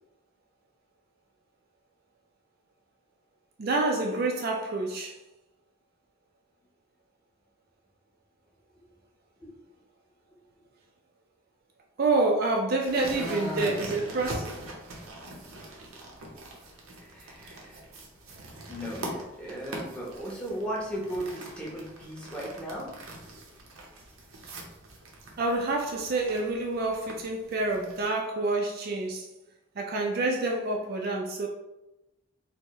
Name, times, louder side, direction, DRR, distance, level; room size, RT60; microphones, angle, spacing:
voice 1, 3.6-5.2 12.0-14.7 25.4-29.3 29.8-31.5, right 2 dB, 45° right, 1 dB, 0.4 m, -28 dB
sound 1, 12.8-28.0, right 1 dB, 85° right, 0.8 m, -43 dB
voice 2, 13.1-14.1 17.0-17.8 18.7-22.9, equal, 5° left, -5 dB, 0.8 m, -36 dB
4.4 x 2.1 x 3.0 m, 0.94 s
head